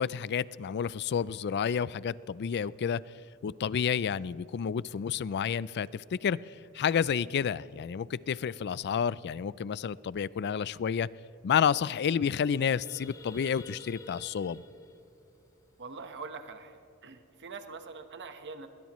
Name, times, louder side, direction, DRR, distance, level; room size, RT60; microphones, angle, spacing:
voice 1, 0.0-3.0 3.4-6.4 6.7-11.1 11.4-14.6, left 7 dB, 50° left, 20 dB, 0.4 m, -30 dB
sound 1, 11.5-11.7 12.1-16.4, left 2 dB, 15° left, 0.9 m, -51 dB
voice 2, 15.8-18.7, right 4 dB, 55° right, 7 dB, 1.2 m, -44 dB
21.0 x 20.5 x 3.1 m, 2.9 s
head